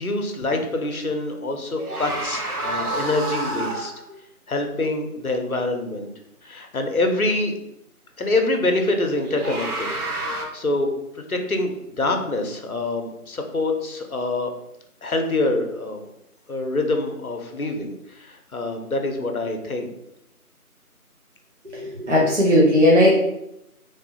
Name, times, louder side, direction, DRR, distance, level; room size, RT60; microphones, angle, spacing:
voice 1, 0.0-3.9 4.5-6.1 6.4-7.5 8.2-10.0 10.5-10.9 11.1-14.5 15.0-16.0 16.5-19.9, left 2 dB, 70° left, 4 dB, 0.7 m, -25 dB
sound 1, 1.8-4.0 9.2-10.5, right 2 dB, 75° right, 0.9 m, -28 dB
voice 2, 21.7-23.2, left 1 dB, 50° right, -5 dB, 0.7 m, -17 dB
3.3 x 2.1 x 2.7 m, 0.81 s
figure-of-eight pair, 175°, 45 cm